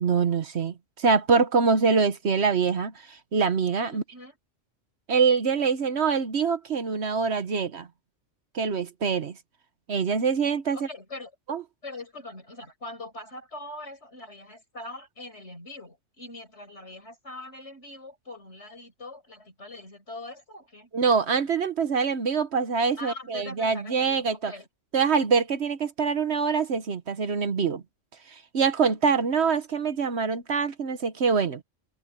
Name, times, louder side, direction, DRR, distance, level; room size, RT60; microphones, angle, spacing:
voice 1, 0.0-4.0 5.1-7.9 8.5-9.4 9.9-10.9 11.5-11.6 20.9-24.5 24.9-27.8 28.3-31.6, right 5 dB, 60° right, 1.3 m, -24 dB
voice 2, 3.9-4.4 10.7-11.3 11.8-20.9 23.0-24.7, left 2 dB, 60° left, 6.2 m, -42 dB
open air
omnidirectional pair, 1.3 m